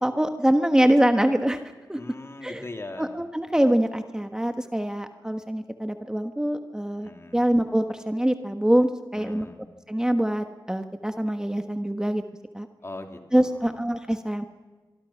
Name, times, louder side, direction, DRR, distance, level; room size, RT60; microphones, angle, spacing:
voice 1, 0.0-1.6 1.9-2.0 2.4-2.6 3.0-9.5 9.9-12.2 12.5-12.7 13.3-14.4, right 1 dB, 10° right, 7 dB, 1.3 m, -24 dB
voice 2, 1.9-3.2 7.0-7.4 9.1-9.6 12.8-13.6, left 2 dB, 35° left, 5 dB, 2.8 m, -40 dB
24.5 x 23.5 x 5.8 m, 1.3 s
wide cardioid pair, 75°, 7 cm